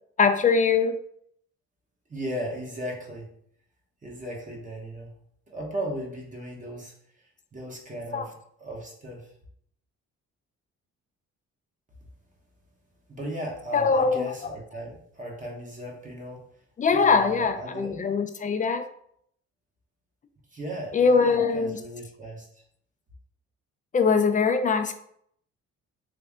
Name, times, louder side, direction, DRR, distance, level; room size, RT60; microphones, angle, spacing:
voice 1, 0.2-0.9 8.1-8.3 13.7-14.3 16.8-18.9 20.9-21.8 23.9-24.9, left 5 dB, 25° left, 8 dB, 0.4 m, -22 dB
voice 2, 2.1-3.3 4.0-5.1 5.5-6.9 7.5-9.3 13.1-16.4 16.9-18.0 20.5-22.5, right 1 dB, 25° right, -1 dB, 1.1 m, -36 dB
3.3 x 2.6 x 3.5 m, 0.68 s
cardioid pair, 90°, 30 cm